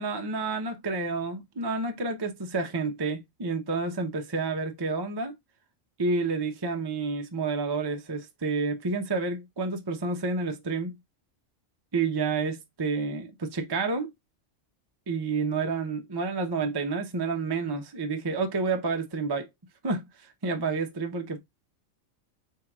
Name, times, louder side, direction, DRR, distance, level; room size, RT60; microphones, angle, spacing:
voice 1, 0.0-5.3 6.0-11.0 11.9-14.1 15.1-19.5 19.8-21.4, right 4 dB, 25° right, 0.6 m, -29 dB
4.5 x 3.7 x 2.3 m
omnidirectional pair, 1.3 m